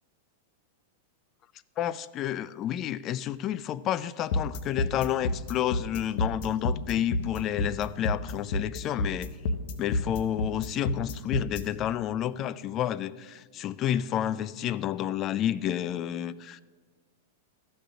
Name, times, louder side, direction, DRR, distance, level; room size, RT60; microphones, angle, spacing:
voice 1, 1.8-9.3 9.8-16.6, left 11 dB, 35° left, 16 dB, 0.4 m, -30 dB
sound 1, 4.3-11.6, left 2 dB, 60° left, 0.9 m, -29 dB
13.0 x 5.2 x 6.2 m, 1.4 s
hypercardioid pair, 100°, 0 cm